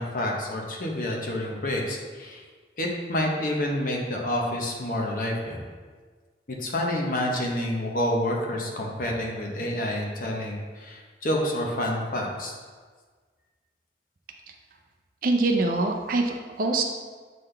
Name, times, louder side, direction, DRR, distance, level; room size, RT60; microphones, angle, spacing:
voice 1, 0.0-2.4 2.8-5.6 6.5-12.5, left 1 dB, 50° left, -1 dB, 0.9 m, -28 dB
voice 2, 15.2-16.8, right 2 dB, 50° right, 3 dB, 0.5 m, -24 dB
7.5 x 3.9 x 3.3 m, 1.5 s
head